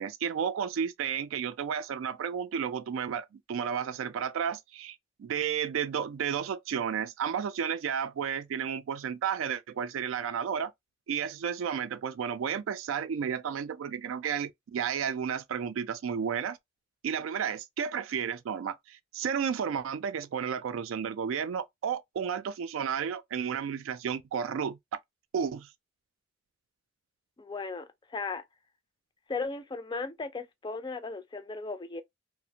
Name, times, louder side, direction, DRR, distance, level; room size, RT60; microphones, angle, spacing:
voice 1, 0.0-10.7 11.1-16.6 17.0-24.8 25.3-25.7, right 7 dB, 85° right, 0.3 m, -32 dB
voice 2, 27.4-28.4 29.3-32.0, left 3 dB, 25° left, 0.4 m, -36 dB
2.4 x 2.0 x 2.7 m
head